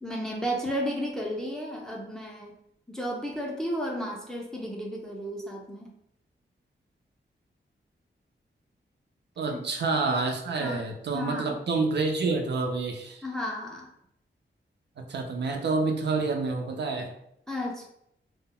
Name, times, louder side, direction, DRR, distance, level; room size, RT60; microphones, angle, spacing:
voice 1, 0.0-2.5 2.9-5.9 9.5-9.6 10.6-10.8 11.1-11.6 13.2-13.9 17.5-17.8, equal, 5° left, -1 dB, 0.4 m, -33 dB
voice 2, 9.4-13.2 15.0-17.1, right 3 dB, 65° right, 3 dB, 0.4 m, -28 dB
2.1 x 2.0 x 3.6 m, 0.75 s
wide cardioid pair, 175°, 19 cm